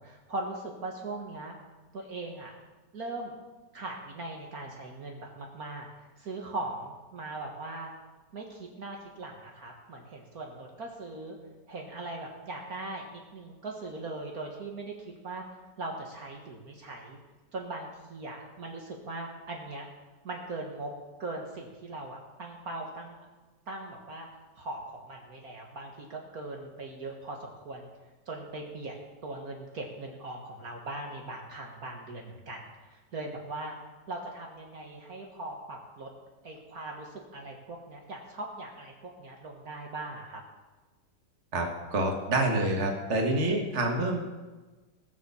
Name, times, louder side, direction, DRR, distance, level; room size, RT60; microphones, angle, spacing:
voice 1, 0.0-1.6 1.9-2.6 2.9-3.3 3.7-5.9 6.2-7.9 8.3-11.4 11.7-15.4 15.8-17.2 17.5-19.9 20.2-20.9 21.2-23.2 23.7-24.3 24.6-27.9 28.3-28.9 29.2-33.8 34.1-36.1 36.4-40.4, right 2 dB, 55° right, 0 dB, 2.0 m, -40 dB
voice 2, 41.5-44.2, right 2 dB, 40° right, 2 dB, 2.0 m, -27 dB
18.5 x 7.1 x 7.1 m, 1.2 s
omnidirectional pair, 1.9 m